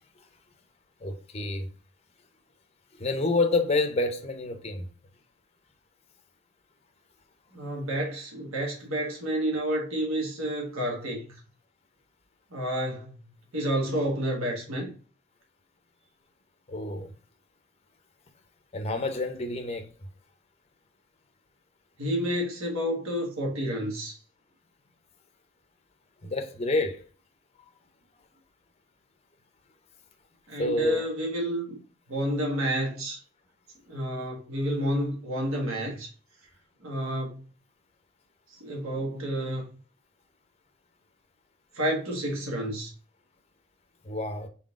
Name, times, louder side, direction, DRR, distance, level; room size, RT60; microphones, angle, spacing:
voice 1, 1.0-1.7 3.0-4.8 16.7-17.1 18.7-19.9 26.2-27.0 30.6-31.1 44.1-44.5, left 3 dB, 30° left, 0.5 m, -28 dB
voice 2, 7.5-11.2 12.5-13.1 13.5-14.9 22.0-24.2 30.5-31.8 32.1-33.2 33.9-36.1 36.8-37.4 38.6-39.7 41.7-42.9, equal, 75° right, 1.3 m, -30 dB
4.2 x 3.8 x 2.4 m
head